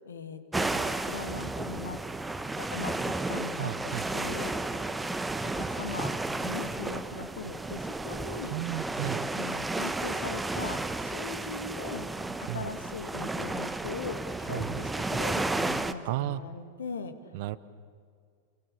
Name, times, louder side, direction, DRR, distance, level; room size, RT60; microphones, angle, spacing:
voice 1, 0.1-2.0 2.6-4.5 5.5-8.6 9.3-12.2 12.5-17.1, left 5 dB, 70° left, 9 dB, 2.1 m, -40 dB
sound 1, 0.5-15.9, right 2 dB, 10° right, 1.1 m, -33 dB
voice 2, 3.6-4.1 8.5-9.2 12.5-12.7 14.5-14.8 16.0-16.4 17.3-17.6, right 16 dB, 50° right, 16 dB, 1.0 m, -33 dB
28.0 x 23.5 x 8.7 m, 2.1 s
figure-of-eight pair, 90°, 0 cm